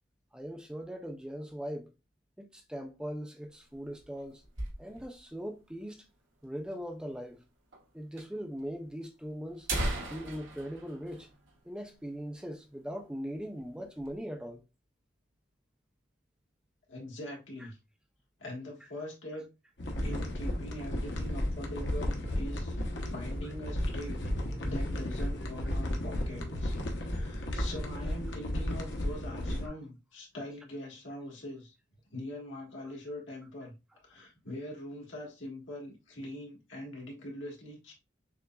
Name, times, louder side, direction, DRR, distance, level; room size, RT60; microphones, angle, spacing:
voice 1, 0.3-1.9 2.4-4.4 4.8-6.0 6.4-7.4 7.9-9.7 10.1-11.3 11.7-14.6 29.7-29.8 32.8-32.9, equal, 5° right, 0.4 m, -40 dB
sound 1, 3.5-5.3 5.6-5.7 5.9-6.0 6.7-6.8 7.7-7.8 8.2-8.3 9.0-9.1 9.5-12.1 12.4-12.5 12.9-13.2 13.6-14.2, right 1 dB, 80° right, 1.0 m, -37 dB
voice 2, 16.9-17.8 18.4-19.4 20.0-24.2 24.6-31.7 32.1-33.7 34.0-37.9, left 1 dB, 75° left, 1.6 m, -43 dB
sound 2, 19.8-29.7, left 1 dB, 60° left, 0.9 m, -33 dB
6.6 x 2.4 x 2.2 m
head